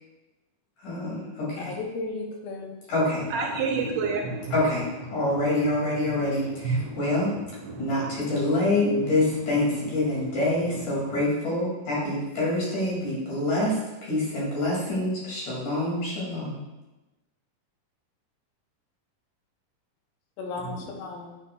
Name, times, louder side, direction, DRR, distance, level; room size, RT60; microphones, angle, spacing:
voice 1, 0.8-1.7 2.9-3.3 4.5-4.9 5.1-7.3 7.8-16.6, left 1 dB, 60° left, -6 dB, 3.7 m, -26 dB
voice 2, 1.6-2.8 20.4-21.4, left 3 dB, 80° left, 1 dB, 2.6 m, -35 dB
voice 3, 3.3-4.6 5.1-5.6 6.1-7.3 7.6-8.5 9.3-9.4 10.1-10.8 11.1-11.2 20.6-21.0, right 4 dB, 75° right, 0 dB, 2.2 m, -32 dB
8.9 x 5.8 x 2.3 m, 1.0 s
omnidirectional pair, 4.1 m